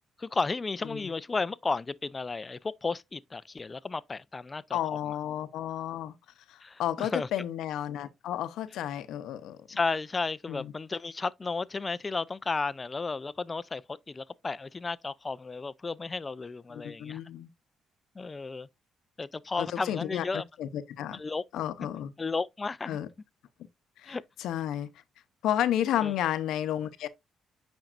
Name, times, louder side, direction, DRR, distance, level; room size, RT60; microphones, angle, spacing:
voice 1, 0.2-4.8 6.6-7.3 9.7-17.2 18.2-18.7 19.2-20.4 21.1-21.4 22.2-23.0 24.1-24.2 26.0-26.1, left 4 dB, 25° left, 0.4 m, -33 dB
voice 2, 4.7-6.1 6.5-9.6 10.5-10.7 16.7-17.5 19.6-21.2 21.5-22.1 22.9-23.1 24.0-24.9 25.4-27.1, left 11 dB, 85° left, 0.7 m, -32 dB
8.9 x 5.3 x 2.5 m
cardioid pair, 90°, 0 cm